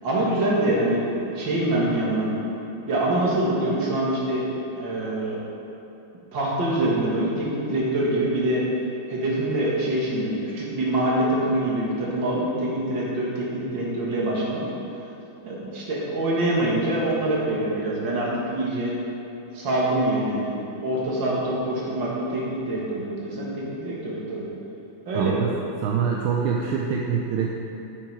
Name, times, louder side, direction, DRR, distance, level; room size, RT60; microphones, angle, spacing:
voice 1, 0.0-2.3 2.9-4.5 4.7-5.4 6.3-8.6 9.1-14.6 15.4-19.0 19.5-20.5 20.8-24.5 25.1-25.4 25.8-26.0, right 1 dB, 65° right, -5 dB, 2.5 m, -25 dB
voice 2, 25.1-25.5 25.8-27.6, right 6 dB, 80° right, -1 dB, 1.5 m, -25 dB
9.6 x 7.9 x 4.7 m, 2.9 s
omnidirectional pair, 2.3 m